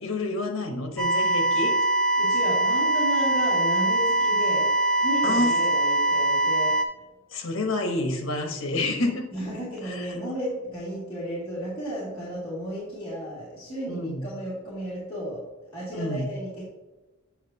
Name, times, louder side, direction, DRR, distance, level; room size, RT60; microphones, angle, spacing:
voice 1, 0.0-1.7 5.2-5.5 7.3-9.3 9.8-10.2 13.9-14.3 15.9-16.3, left 2 dB, 65° left, 4 dB, 1.1 m, -28 dB
sound 1, 1.0-6.9, right 2 dB, 5° left, 0.5 m, -23 dB
voice 2, 2.2-6.7 9.3-15.4 15.7-16.6, equal, 25° left, -11 dB, 2.2 m, -33 dB
8.5 x 5.9 x 2.8 m, 1.1 s
head